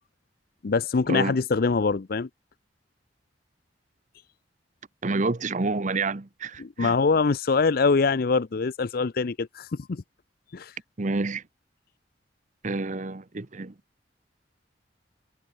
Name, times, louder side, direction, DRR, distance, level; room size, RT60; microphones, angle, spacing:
voice 1, 0.6-2.3 6.6-10.0 10.5-10.7, left 4 dB, 55° left, 0.6 m, -24 dB
voice 2, 5.0-7.0 11.0-11.4 12.6-13.7, right 3 dB, 45° right, 0.9 m, -28 dB
head